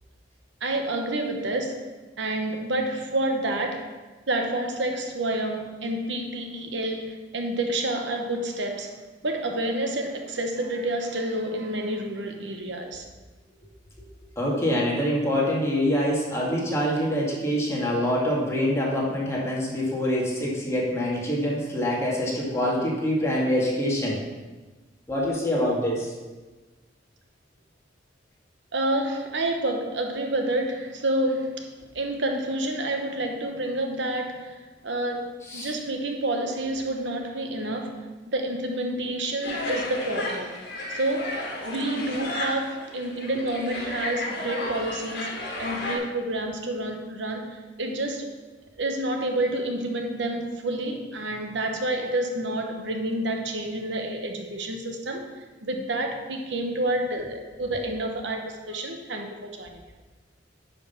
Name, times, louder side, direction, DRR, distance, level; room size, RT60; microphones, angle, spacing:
voice 1, 0.6-1.8 2.2-3.9 4.3-8.9 9.2-13.1 28.7-34.6 34.8-38.0 38.3-40.6 40.9-48.3 48.8-59.8, right 1 dB, 70° right, 3 dB, 1.1 m, -29 dB
voice 2, 14.4-24.2 25.1-26.1 35.5-35.7, equal, 15° left, -4 dB, 2.1 m, -25 dB
sound 1, 39.4-46.0, left 2 dB, 60° left, 2.0 m, -33 dB
10.0 x 5.6 x 5.8 m, 1.2 s
head